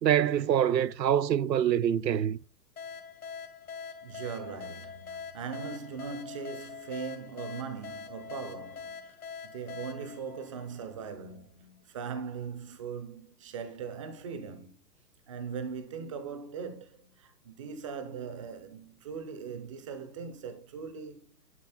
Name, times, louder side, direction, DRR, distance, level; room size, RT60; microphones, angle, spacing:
voice 1, 0.0-2.4, right 10 dB, 80° right, 0.9 m, -25 dB
sound 1, 2.8-11.2, left 6 dB, 60° left, 1.8 m, -44 dB
voice 2, 4.0-9.1 9.4-14.8 15.3-21.2, right 6 dB, 20° right, 0.8 m, -40 dB
11.0 x 6.0 x 4.4 m
hypercardioid pair, 165°, 50 cm